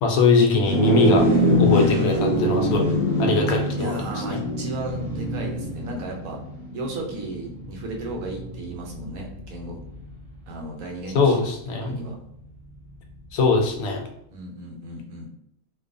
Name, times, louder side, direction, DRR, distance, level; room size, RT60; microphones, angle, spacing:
voice 1, 0.0-1.3 1.6-2.9 3.2-4.4 11.1-12.0 13.3-14.1, left 4 dB, 85° left, 2 dB, 1.0 m, -21 dB
sound 1, 0.6-10.2, equal, 35° right, 1.1 m, -24 dB
voice 2, 3.8-6.4 6.7-9.8 10.5-11.4 11.8-12.2 14.3-15.3, right 2 dB, 75° right, 0 dB, 1.1 m, -35 dB
2.6 x 2.3 x 2.5 m, 0.76 s
omnidirectional pair, 1.5 m